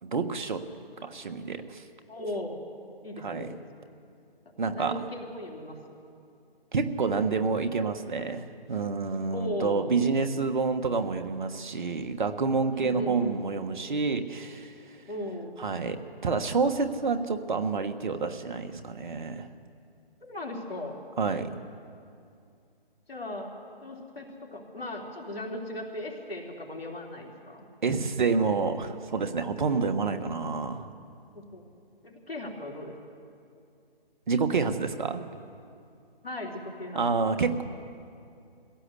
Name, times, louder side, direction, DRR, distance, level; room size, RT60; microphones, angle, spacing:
voice 1, 0.0-0.6 1.0-1.8 3.2-3.5 4.6-5.0 6.7-14.7 15.6-19.5 21.2-21.5 27.8-30.9 34.3-35.2 36.9-37.6, right 4 dB, 55° right, 8 dB, 1.4 m, -28 dB
voice 2, 2.1-2.6 3.0-3.5 4.7-5.8 9.3-10.0 12.7-13.4 15.1-15.6 20.2-21.0 23.1-23.5 23.8-27.7 31.3-31.6 32.0-32.9 36.2-37.0, left 1 dB, 80° left, 0 dB, 3.8 m, -37 dB
21.0 x 16.0 x 8.4 m, 2.5 s
figure-of-eight pair, 155°, 30 cm